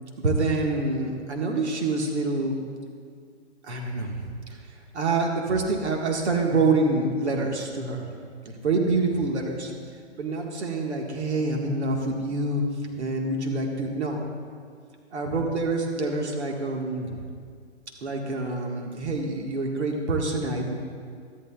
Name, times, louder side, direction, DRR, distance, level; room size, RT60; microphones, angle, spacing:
voice 1, 0.2-2.6 3.6-4.3 4.9-8.1 8.4-9.7 10.2-12.6 12.9-14.2 15.1-17.2 18.0-20.7, right 3 dB, 75° right, 1 dB, 1.7 m, -26 dB
13.0 x 12.5 x 2.4 m, 2.1 s
hypercardioid pair, 150°, 35 cm